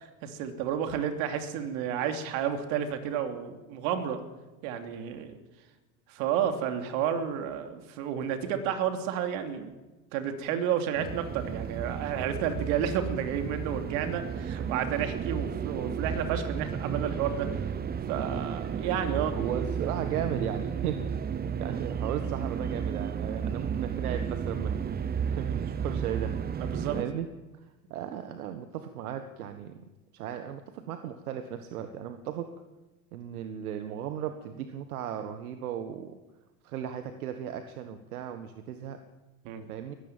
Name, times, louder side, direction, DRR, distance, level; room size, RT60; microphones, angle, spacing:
voice 1, 0.2-4.2 4.6-5.4 6.1-9.8 10.1-17.5 18.1-19.4 26.7-27.0 39.4-39.7, right 8 dB, 65° right, 7 dB, 3.1 m, -31 dB
sound 1, 11.0-27.0, right 7 dB, 20° right, 0.9 m, -33 dB
voice 2, 19.3-21.0 21.6-26.4 26.9-27.3 27.6-29.8 30.1-32.5 33.1-36.2 36.6-39.0 39.7-39.9, right 9 dB, 80° right, 9 dB, 1.6 m, -36 dB
20.0 x 15.0 x 9.0 m, 1.1 s
hypercardioid pair, 105°, 43 cm